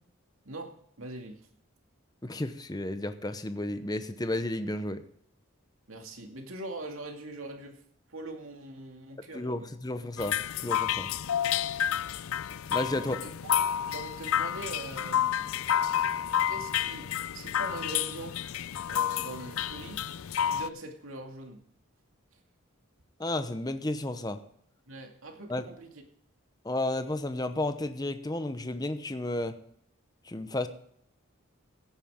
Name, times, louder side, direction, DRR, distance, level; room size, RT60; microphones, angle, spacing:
voice 1, 0.4-1.4 5.9-7.8 8.1-9.7 11.4-11.6 13.0-13.3 13.8-15.5 16.5-18.4 18.9-20.0 20.4-21.6 24.9-26.0, right 2 dB, 80° right, 3 dB, 2.4 m, -42 dB
voice 2, 2.2-5.0 9.3-10.4 10.6-11.1 12.7-13.2 23.2-24.4 25.5-25.6 26.6-29.6 30.3-30.7, left 1 dB, 20° left, 9 dB, 0.7 m, -32 dB
sound 1, 10.2-20.7, left 9 dB, 85° left, 0.5 m, -30 dB
16.0 x 9.0 x 3.7 m, 0.66 s
head